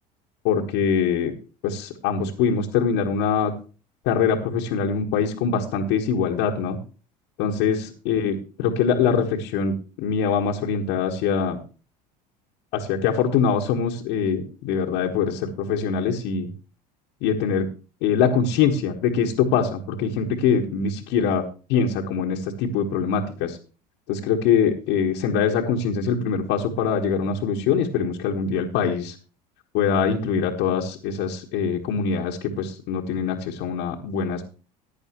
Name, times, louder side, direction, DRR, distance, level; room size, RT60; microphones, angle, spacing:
voice 1, 0.4-1.3 1.6-3.5 4.0-6.8 7.4-11.6 12.7-15.3 15.7-16.5 17.2-17.7 18.0-21.4 21.7-23.6 24.1-29.1 29.7-34.4, left 6 dB, 60° left, -1 dB, 1.5 m, -23 dB
15.0 x 10.5 x 3.0 m, 0.35 s
hypercardioid pair, 70°, 21 cm